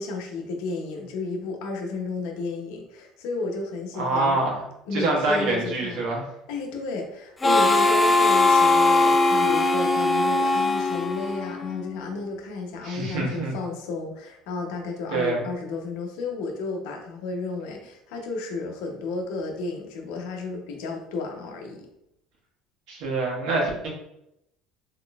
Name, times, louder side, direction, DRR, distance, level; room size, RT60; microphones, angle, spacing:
voice 1, 0.0-4.5 4.9-6.0 6.5-21.9, left 3 dB, 80° left, 2 dB, 0.7 m, -32 dB
voice 2, 3.9-4.6 4.9-6.3 12.8-13.5 15.1-15.4 22.9-23.9, right 2 dB, 75° right, -2 dB, 1.2 m, -25 dB
Harmonica, 7.4-11.9, left 2 dB, 20° left, 0.4 m, -20 dB
3.9 x 2.9 x 2.3 m, 0.81 s
supercardioid pair, 115°, 0 cm